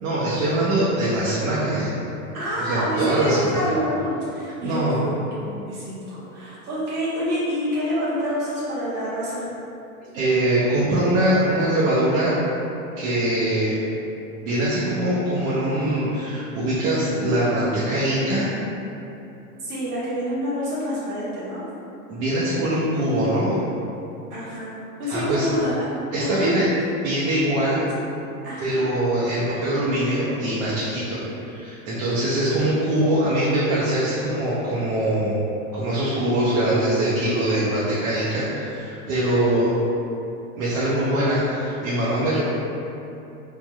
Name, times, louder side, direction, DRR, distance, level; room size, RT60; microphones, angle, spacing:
voice 1, 0.0-1.9 2.6-3.6 4.6-5.0 10.1-12.4 13.0-13.8 14.4-18.5 22.1-23.6 25.1-25.5 26.1-26.7 27.0-27.8 28.6-35.4 35.7-39.7 40.6-42.4, right 1 dB, 65° right, -9 dB, 0.8 m, -22 dB
voice 2, 2.3-9.5 19.6-21.6 24.3-25.9 26.2-26.5 28.4-28.8, equal, 90° right, -10 dB, 1.0 m, -27 dB
3.3 x 2.5 x 2.3 m, 2.8 s
hypercardioid pair, 100°, 43 cm